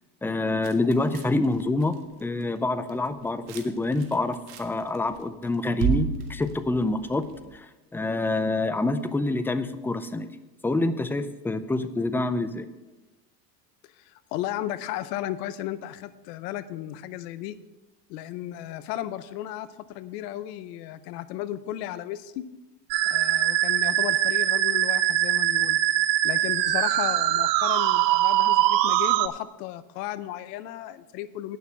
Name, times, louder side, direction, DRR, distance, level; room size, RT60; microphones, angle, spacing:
voice 1, 0.2-10.3 10.6-12.7, left 2 dB, 5° left, 11 dB, 0.4 m, -27 dB
sound 1, 0.6-2.1 2.4-2.6 2.9-3.6 3.9-5.2 5.4-7.5, right 9 dB, 50° right, 1.7 m, -31 dB
voice 2, 13.8-17.6 18.1-22.4 23.1-25.8 26.2-31.6, left 13 dB, 80° left, 15 dB, 0.8 m, -34 dB
Musical instrument, 22.9-29.3, right 14 dB, 90° right, 0.7 m, -22 dB
9.3 x 6.3 x 7.2 m, 1.1 s
supercardioid pair, 95°, 48 cm